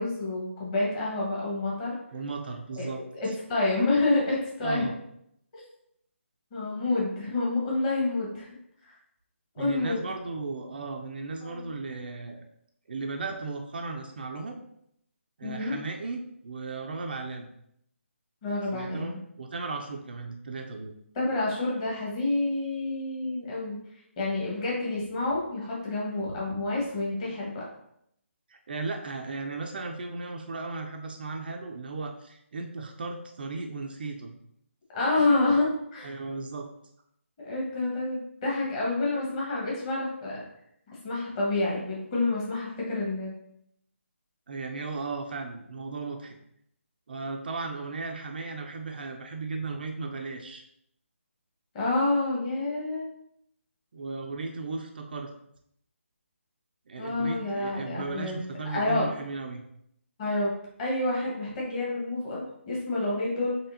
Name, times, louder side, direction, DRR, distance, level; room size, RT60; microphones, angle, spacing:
voice 1, 0.0-2.0 2.8-2.9 3.1-4.9 6.5-8.5 9.5-10.0 11.4-11.6 15.4-15.8 18.4-19.2 21.1-23.8 24.2-27.6 34.9-36.1 37.4-40.4 41.0-43.3 51.7-53.1 57.0-58.4 58.7-59.0 60.2-60.5 60.8-63.6, left 2 dB, 25° left, -5 dB, 1.3 m, -28 dB
voice 2, 2.1-3.0 3.3-3.4 4.6-4.9 9.6-12.4 12.9-14.6 15.4-17.5 18.7-20.9 28.5-34.3 36.0-36.7 44.5-46.4 47.1-50.6 53.9-55.3 56.9-59.6, right 3 dB, 45° right, 3 dB, 0.4 m, -36 dB
4.2 x 3.2 x 2.6 m, 0.74 s
figure-of-eight pair, 150°, 7 cm